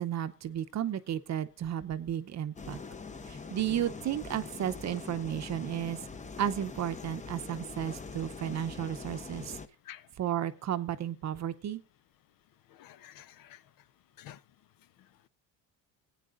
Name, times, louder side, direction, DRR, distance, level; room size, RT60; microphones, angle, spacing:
voice 1, 0.0-2.8 3.3-6.0 6.4-9.6 10.2-11.8, right 10 dB, 45° right, 0.8 m, -33 dB
sound 1, 2.6-9.7, left 4 dB, 20° left, 0.8 m, -43 dB
voice 2, 12.7-13.6 14.2-14.4, left 12 dB, 60° left, 0.7 m, -50 dB
17.5 x 9.0 x 2.5 m
cardioid pair, 110°, 39 cm